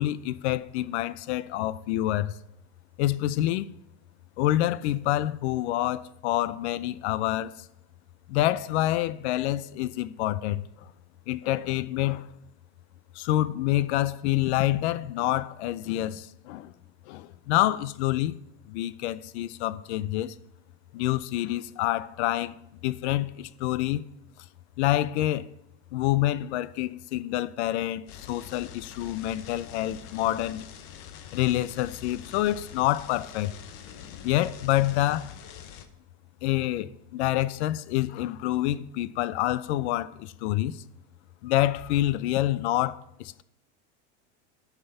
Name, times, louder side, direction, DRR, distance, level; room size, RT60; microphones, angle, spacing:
voice 1, 0.0-2.4 3.0-3.8 4.4-7.7 8.3-10.7 11.3-12.3 13.1-16.7 17.1-18.4 18.7-20.4 20.9-22.5 22.8-24.0 24.8-25.5 25.9-30.7 31.3-33.5 34.2-35.3 36.4-40.8 41.4-43.4, left 14 dB, 75° left, 0.6 m, -27 dB
sound 1, 28.1-35.9, left 9 dB, 40° left, 0.8 m, -45 dB
7.9 x 5.9 x 5.4 m
supercardioid pair, 175°, 34 cm